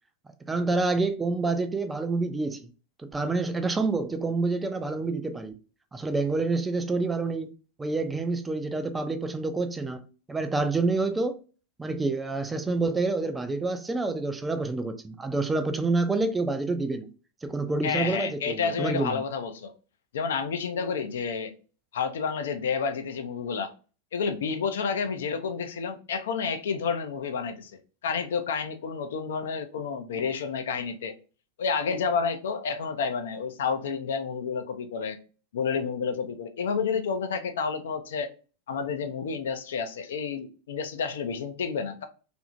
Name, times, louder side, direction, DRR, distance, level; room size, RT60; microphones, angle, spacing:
voice 1, 0.5-2.7 3.0-5.5 5.9-7.5 7.8-10.0 10.3-11.4 11.8-17.1 17.4-19.2, right 3 dB, 10° right, 0.4 m, -28 dB
voice 2, 17.8-19.7 20.1-21.5 21.9-23.7 24.1-27.7 28.0-31.1 31.6-35.2 35.5-38.3 38.7-42.0, left 5 dB, 60° left, 0.4 m, -30 dB
2.8 x 2.6 x 2.5 m
figure-of-eight pair, 90°, 0 cm